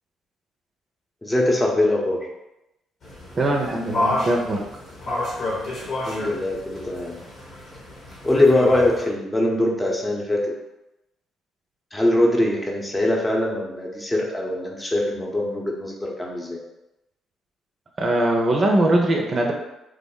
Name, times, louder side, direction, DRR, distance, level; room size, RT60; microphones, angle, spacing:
voice 1, 1.2-2.3 6.0-7.2 8.2-10.6 11.9-16.6, left 1 dB, 20° left, -1 dB, 0.8 m, -22 dB
sound 1, 3.0-9.0, left 2 dB, 55° left, 1.1 m, -30 dB
voice 2, 3.4-4.6 18.0-19.5, right 1 dB, 40° right, 0 dB, 0.5 m, -21 dB
3.2 x 2.0 x 3.7 m, 0.91 s
hypercardioid pair, 50°, 0 cm